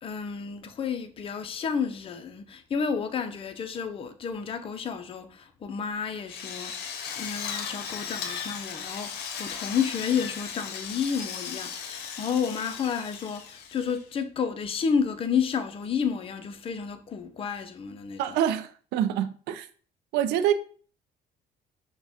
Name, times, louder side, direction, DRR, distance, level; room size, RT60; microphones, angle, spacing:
voice 1, 0.0-6.7 7.2-18.4, left 6 dB, 35° left, 0.5 m, -31 dB
Drill, 6.3-14.1, left 7 dB, 75° left, 0.6 m, -37 dB
voice 2, 18.2-19.7 20.1-20.5, right 10 dB, 80° right, 0.4 m, -26 dB
5.7 x 2.2 x 2.7 m
cardioid pair, 110°, 17 cm